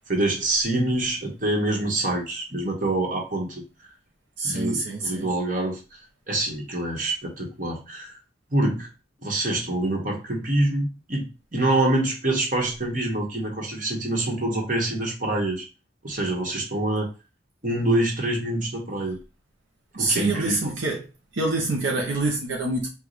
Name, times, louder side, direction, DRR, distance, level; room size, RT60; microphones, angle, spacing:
voice 1, 0.1-3.6 4.4-5.8 6.3-8.2 8.5-8.9 9.2-11.3 11.5-15.7 16.0-17.1 17.6-19.2 20.0-20.7, right 1 dB, 40° right, 1.3 m, -25 dB
voice 2, 4.4-5.3 19.9-21.1 21.3-22.9, right 2 dB, 70° right, 0.8 m, -26 dB
4.8 x 2.4 x 4.0 m
head